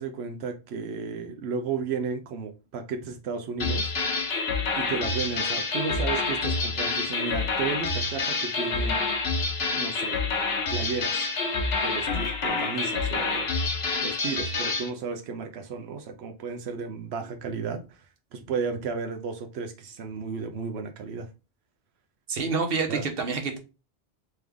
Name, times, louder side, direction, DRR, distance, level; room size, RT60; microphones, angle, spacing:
voice 1, 0.0-3.9 4.8-9.2 9.7-10.2 10.7-11.3 11.8-13.5 14.0-18.1 18.3-21.3 22.9-23.1, right 5 dB, 80° right, 0.8 m, -33 dB
sound 1, 3.6-14.9, left 3 dB, 70° left, 1.1 m, -27 dB
voice 2, 22.3-23.6, right 4 dB, 65° right, 1.1 m, -27 dB
3.4 x 3.3 x 3.5 m
omnidirectional pair, 1.1 m